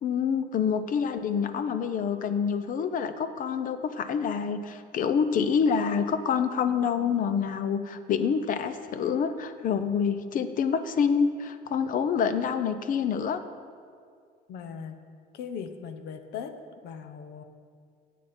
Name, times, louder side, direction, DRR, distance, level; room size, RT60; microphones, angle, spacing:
voice 1, 0.0-13.4, left 6 dB, 55° left, 10 dB, 0.7 m, -27 dB
voice 2, 14.5-15.0 15.3-16.6 16.8-17.4, left 7 dB, 80° left, 8 dB, 0.9 m, -38 dB
13.5 x 8.3 x 4.4 m, 2.2 s
cardioid pair, 110°, 17 cm